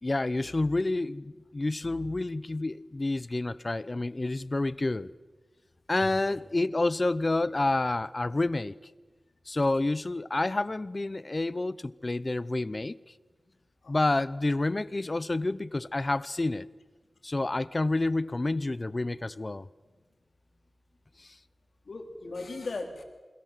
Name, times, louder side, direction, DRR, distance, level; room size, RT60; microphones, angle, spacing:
voice 1, 0.0-5.1 5.9-8.8 9.5-13.0 13.9-16.7 17.2-19.7, left 2 dB, 40° left, 0.8 m, -29 dB
voice 2, 6.0-6.3 13.8-14.1 21.9-23.0, left 3 dB, 85° left, 3.7 m, -39 dB
28.0 x 21.5 x 7.7 m
wide cardioid pair, 70°, 0 cm